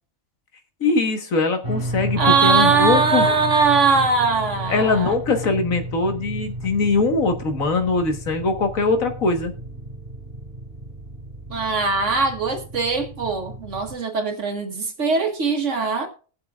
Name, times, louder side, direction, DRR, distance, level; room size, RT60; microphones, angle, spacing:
voice 1, 0.8-3.3 4.7-9.5, left 3 dB, 75° left, 6 dB, 1.8 m, -21 dB
sound 1, 1.6-14.0, right 1 dB, 35° right, 2.3 m, -33 dB
voice 2, 2.2-5.1 11.5-16.1, right 4 dB, 60° right, 5 dB, 1.5 m, -20 dB
20.5 x 7.8 x 2.4 m, 0.40 s
omnidirectional pair, 1.4 m